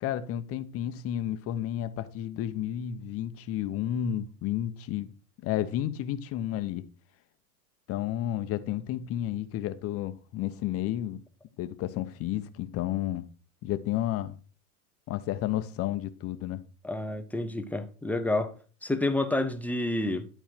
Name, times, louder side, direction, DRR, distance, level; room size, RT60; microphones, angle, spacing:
voice 1, 0.0-5.1 5.4-6.9 7.9-11.2 11.6-13.2 13.6-14.4 15.1-16.6, left 12 dB, 30° left, 0.9 m, -31 dB
voice 2, 16.8-18.5 18.8-20.3, left 2 dB, 5° left, 0.6 m, -29 dB
11.0 x 4.5 x 4.4 m
hypercardioid pair, 110°, 45 cm